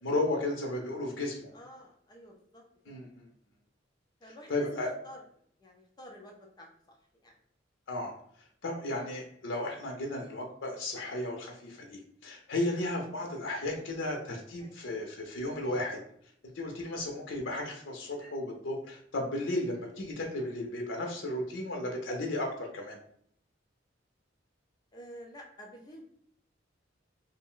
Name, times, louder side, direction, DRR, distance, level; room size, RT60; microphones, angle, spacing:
voice 1, 0.0-1.5 2.9-3.3 4.5-4.9 7.9-8.1 8.6-16.0 16.5-23.0, left 1 dB, 75° left, 1 dB, 0.6 m, -34 dB
voice 2, 1.5-2.9 4.2-5.2 5.6-7.0 7.2-7.3 14.6-14.8 24.9-26.0, equal, 20° left, 0 dB, 0.4 m, -50 dB
2.5 x 2.0 x 3.6 m, 0.65 s
head